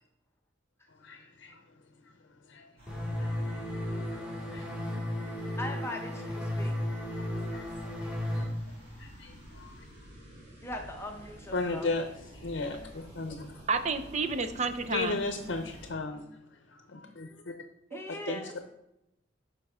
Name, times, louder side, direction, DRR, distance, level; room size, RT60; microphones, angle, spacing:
voice 1, 1.0-1.6 2.5-2.6 3.2-3.3 4.5-4.6 7.5-7.6 9.0-9.7 11.5-12.0 12.4-13.5 14.9-16.2 16.9-17.5 18.1-18.6, left 3 dB, 70° left, 6 dB, 0.7 m, -35 dB
sound 1, 2.8-15.9, equal, 60° right, 3.1 m, -51 dB
sound 2, 2.9-8.4, left 1 dB, 5° right, 1.9 m, -34 dB
voice 2, 5.6-6.7 10.6-11.9 17.9-18.6, left 1 dB, 15° left, 2 dB, 0.7 m, -40 dB
voice 3, 13.7-15.2 17.9-18.3, right 4 dB, 40° right, 8 dB, 0.6 m, -31 dB
9.0 x 5.3 x 3.6 m, 0.86 s
head